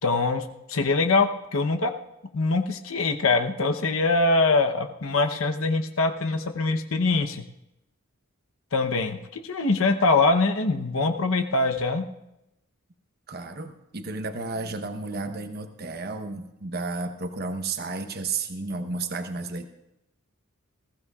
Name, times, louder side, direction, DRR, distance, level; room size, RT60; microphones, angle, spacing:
voice 1, 0.0-1.9 2.3-7.4 8.7-12.0, left 3 dB, 70° left, 5 dB, 0.9 m, -23 dB
voice 2, 13.3-19.7, right 3 dB, 45° right, 7 dB, 1.0 m, -32 dB
20.0 x 15.5 x 2.4 m, 0.89 s
head